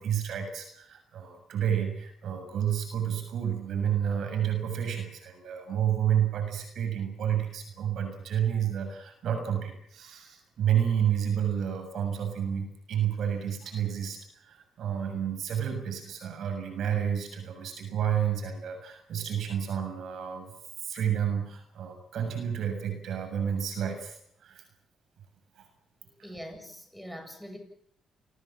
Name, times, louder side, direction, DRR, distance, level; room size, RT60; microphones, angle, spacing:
voice 1, 0.0-20.5 20.8-24.6 25.6-25.7, right 9 dB, 70° right, 6 dB, 7.1 m, -30 dB
voice 2, 26.2-27.6, equal, ahead, 6 dB, 7.9 m, -43 dB
28.5 x 19.5 x 7.6 m, 0.71 s
cardioid pair, 90°, 0 cm